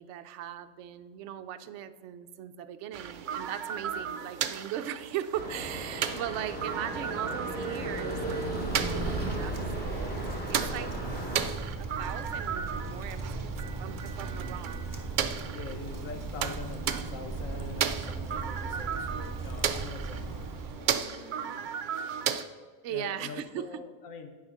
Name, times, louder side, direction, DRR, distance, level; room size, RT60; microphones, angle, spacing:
voice 1, 0.0-10.1 10.5-10.9 11.5-13.5 13.8-14.9 22.8-23.7, right 11 dB, 65° right, 11 dB, 0.8 m, -39 dB
sound 1, 2.9-22.4, right 8 dB, 85° right, 0.4 m, -35 dB
sound 2, 5.3-11.5, right 1 dB, 5° left, 2.0 m, -35 dB
Wind, 8.2-21.0, right 3 dB, 15° right, 0.9 m, -38 dB
voice 2, 15.5-21.7 22.6-24.3, left 4 dB, 70° left, 6 dB, 1.4 m, -45 dB
9.6 x 5.0 x 5.7 m, 1.4 s
omnidirectional pair, 1.4 m